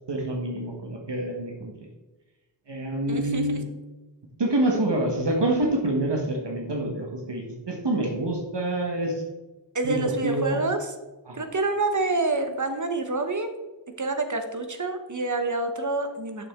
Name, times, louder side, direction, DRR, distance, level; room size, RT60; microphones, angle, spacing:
voice 1, 0.1-1.9 2.7-3.6 4.4-9.2 9.8-10.6 11.3-11.4, right 1 dB, 65° right, 0 dB, 1.6 m, -27 dB
voice 2, 3.1-3.6 9.7-10.9 11.3-13.6 14.0-16.5, right 2 dB, 40° right, 7 dB, 1.1 m, -27 dB
8.8 x 6.8 x 3.7 m, 1.1 s
wide cardioid pair, 65°, 44 cm